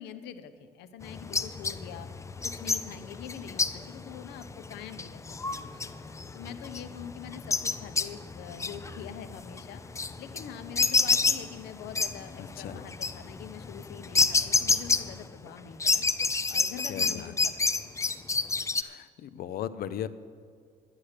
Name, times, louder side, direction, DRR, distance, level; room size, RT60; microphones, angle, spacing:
voice 1, 0.0-2.1 2.4-5.9 6.3-16.0 16.5-18.0, left 8 dB, 85° left, 11 dB, 0.9 m, -44 dB
sound 1, 1.0-15.5 15.8-18.8, left 4 dB, 15° left, 0.5 m, -29 dB
voice 2, 16.9-17.3 18.8-20.1, left 10 dB, 60° left, 14 dB, 0.6 m, -37 dB
11.5 x 10.0 x 6.7 m, 2.1 s
cardioid pair, 110°, 17 cm